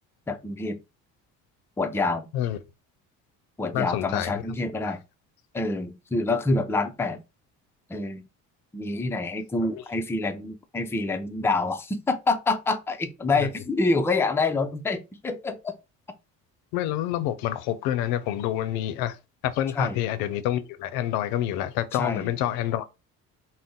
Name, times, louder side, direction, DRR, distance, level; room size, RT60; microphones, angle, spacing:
voice 1, 0.3-0.8 1.8-2.3 3.6-5.0 5.5-7.2 7.9-8.2 8.7-15.7 19.8-20.0 22.0-22.3, left 3 dB, 5° left, 0.4 m, -27 dB
voice 2, 3.7-4.4 4.8-4.9 9.7-9.8 13.4-13.5 16.7-19.2 19.4-22.8, left 12 dB, 85° left, 0.5 m, -27 dB
2.5 x 2.1 x 3.6 m
supercardioid pair, 80°, 36 cm